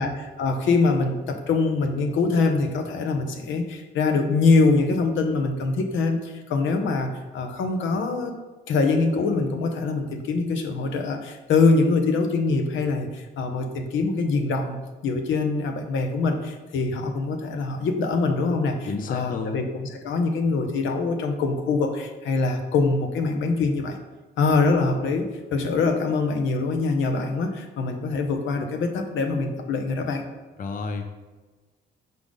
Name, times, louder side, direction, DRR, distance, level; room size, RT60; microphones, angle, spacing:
voice 1, 0.0-8.3 8.7-14.8 15.0-24.0 24.4-30.2, left 3 dB, 75° left, 5 dB, 0.9 m, -24 dB
voice 2, 18.9-19.6 30.6-31.1, left 4 dB, 45° left, 6 dB, 0.6 m, -30 dB
5.8 x 3.7 x 5.2 m, 1.3 s
cardioid pair, 90°, 20 cm